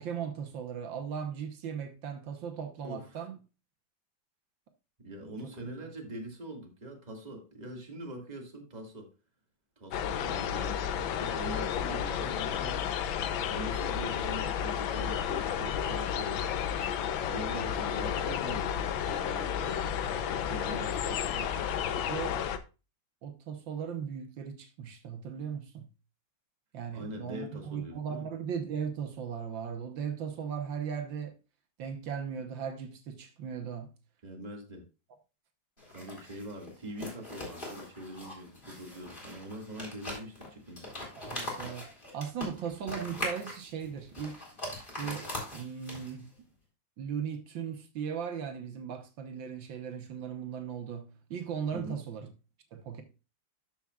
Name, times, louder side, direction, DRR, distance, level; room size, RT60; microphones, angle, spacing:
voice 1, 0.0-3.3 5.4-5.5 22.1-22.4 23.2-25.9 26.7-31.3 31.8-33.9 41.2-41.9 42.1-44.4 45.0-46.3 47.0-52.3 52.7-53.0, right 7 dB, 75° right, 1.7 m, -37 dB
voice 2, 2.8-3.3 5.0-9.1 9.8-12.8 13.5-16.4 17.3-19.9 20.4-21.5 26.9-28.3 34.2-34.8 35.9-40.9 51.7-52.0, right 1 dB, 20° right, 2.0 m, -43 dB
sound 1, 9.9-22.6, left 8 dB, 90° left, 1.5 m, -32 dB
sound 2, 35.8-46.3, left 1 dB, 25° left, 3.5 m, -41 dB
13.0 x 5.8 x 2.4 m
omnidirectional pair, 2.1 m